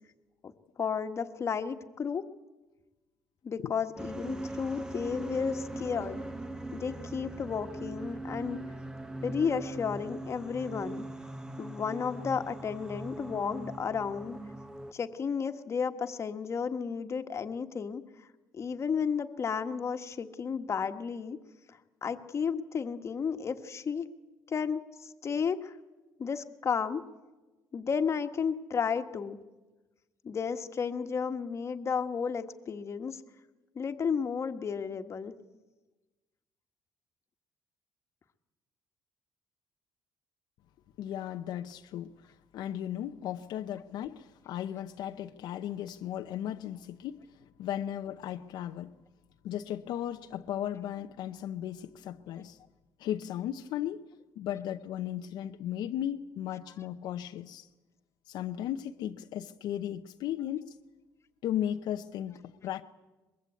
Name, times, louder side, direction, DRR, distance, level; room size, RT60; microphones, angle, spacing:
voice 1, 0.8-2.2 3.4-6.2 6.7-8.6 9.2-11.0 11.6-14.4 14.9-18.0 18.5-21.4 21.7-24.1 24.5-25.7 26.2-27.0 27.7-29.4 30.2-33.2 33.7-35.3, left 6 dB, 40° left, 1.5 m, -33 dB
sound 1, 4.0-14.9, right 1 dB, 10° right, 1.2 m, -40 dB
voice 2, 41.0-47.2 47.6-48.9 49.4-52.6 53.0-54.0 54.4-57.7 58.3-60.7 61.4-62.8, left 11 dB, 75° left, 0.8 m, -36 dB
23.5 x 21.5 x 8.4 m
cardioid pair, 105°, 7 cm